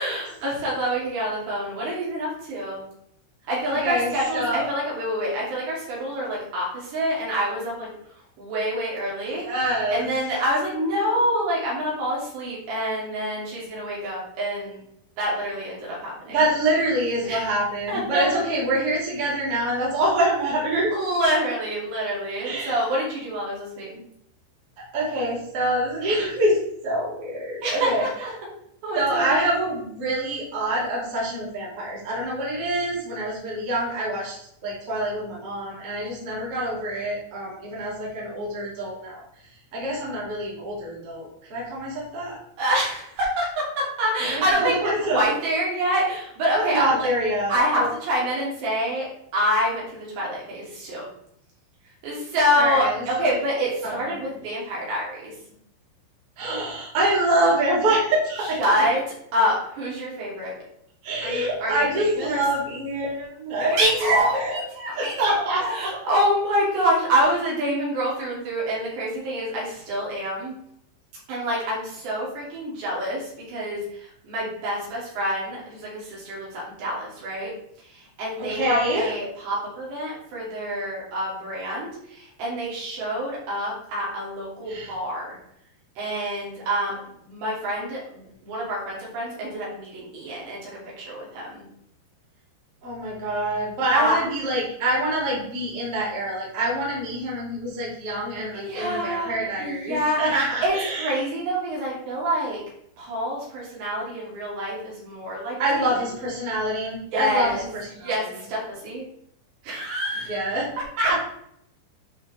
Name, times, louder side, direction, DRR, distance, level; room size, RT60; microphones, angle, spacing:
voice 1, 0.0-2.8 3.5-7.9 8.4-9.5 9.9-14.8 15.2-16.4 17.2-17.4 17.9-18.4 20.9-24.0 27.6-28.3 28.8-29.4 42.6-47.1 47.5-51.1 52.0-55.3 58.6-59.0 59.3-60.6 61.2-62.4 63.6-70.5 71.3-77.5 77.9-85.4 86.0-90.7 91.0-91.7 93.9-94.2 98.5-102.6 103.0-106.0 107.1-107.6 107.9-109.0 109.6-110.5 111.0-111.2, equal, 70° right, -5 dB, 4.9 m, -26 dB
voice 2, 3.6-4.7 9.4-10.1 16.3-20.9 22.4-22.7 24.9-28.1 28.9-39.2 39.7-42.4 44.3-45.3 46.5-47.9 52.5-53.3 53.8-54.0 56.4-58.6 61.0-64.6 64.9-65.9 78.4-79.1 84.7-84.9 92.8-101.1 105.6-107.6 108.0-108.3 110.3-110.7 111.1-111.2, right 1 dB, 35° right, -5 dB, 3.2 m, -25 dB
11.5 x 4.7 x 3.4 m, 0.72 s
omnidirectional pair, 5.1 m